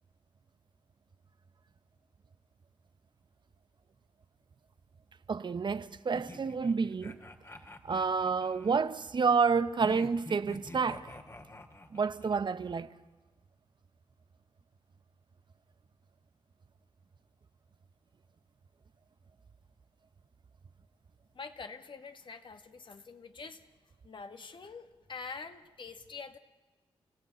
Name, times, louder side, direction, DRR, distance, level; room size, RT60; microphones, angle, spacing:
voice 1, 5.3-7.2 7.8-11.1 11.9-12.9, right 5 dB, 50° right, 0.9 m, -29 dB
sound 1, 6.1-8.8 9.8-12.4, left 1 dB, 30° left, 2.4 m, -48 dB
voice 2, 21.4-23.6 24.0-26.4, left 4 dB, 55° left, 2.0 m, -45 dB
29.5 x 16.0 x 9.2 m
cardioid pair, 50°, 10 cm